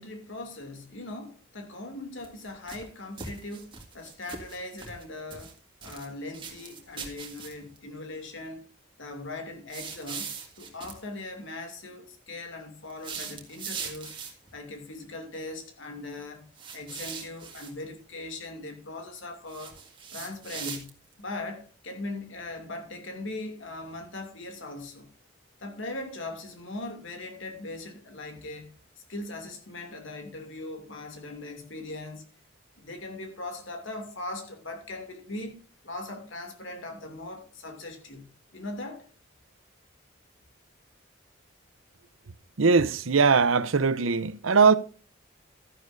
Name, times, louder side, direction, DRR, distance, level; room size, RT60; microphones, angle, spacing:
voice 1, 0.0-5.5 5.8-8.7 9.0-10.3 10.6-14.1 14.5-19.8 20.1-25.1 25.6-28.7 29.1-32.2 32.8-35.6 35.8-39.1, left 2 dB, 75° left, 2.6 m, -40 dB
sound 1, 2.2-2.9 3.2-5.0 5.3-6.1 6.3-7.8 9.7-11.0 12.9-14.5 16.6-17.7 19.5-21.1, right 6 dB, 25° right, 2.0 m, -40 dB
voice 2, 42.6-44.7, right 5 dB, 85° right, 0.8 m, -21 dB
12.5 x 11.0 x 2.6 m
head